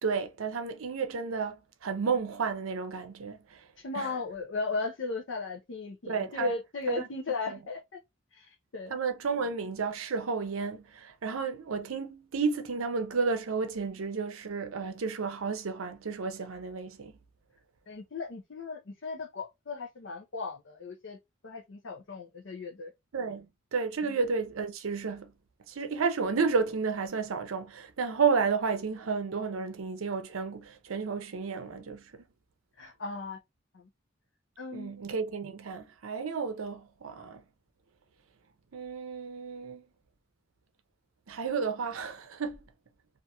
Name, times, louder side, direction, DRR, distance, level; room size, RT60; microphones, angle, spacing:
voice 1, 0.0-3.6 3.9-4.2 6.1-6.5 6.9-7.0 7.5-7.6 8.9-17.1 23.1-23.5 23.7-25.3 25.7-32.2 34.7-37.4 38.7-39.8 41.3-42.6, right 5 dB, 85° right, 0.5 m, -32 dB
voice 2, 3.8-8.0 8.3-9.0 17.9-21.2 21.4-22.9 24.0-24.2 32.8-33.4 33.7-33.9 34.6-34.9, left 3 dB, 60° left, 0.5 m, -36 dB
2.8 x 2.5 x 2.2 m
head